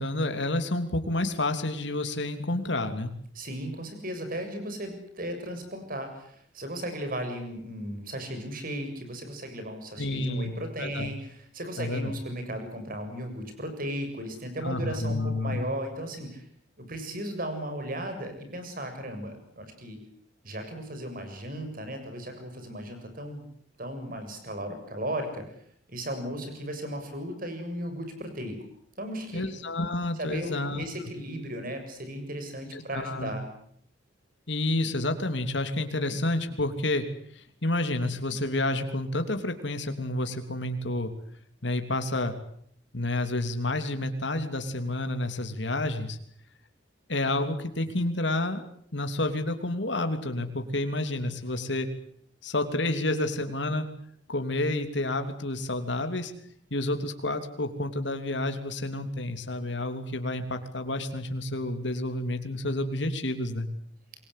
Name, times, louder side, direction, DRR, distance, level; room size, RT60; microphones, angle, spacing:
voice 1, 0.0-3.1 10.0-11.1 11.8-12.1 14.6-15.6 29.3-30.8 32.7-33.3 34.5-37.1 37.3-41.1 41.6-42.3 42.9-46.2 47.1-48.6 48.9-51.9 52.4-53.8 54.3-56.3 56.7-63.7, left 2 dB, 65° left, 7 dB, 3.1 m, -29 dB
voice 2, 3.4-16.4 16.8-20.0 20.4-23.4 23.8-25.5 25.9-28.6 29.0-29.4 30.2-33.4, right 1 dB, 50° right, 7 dB, 7.2 m, -36 dB
27.0 x 22.0 x 8.4 m, 0.65 s
head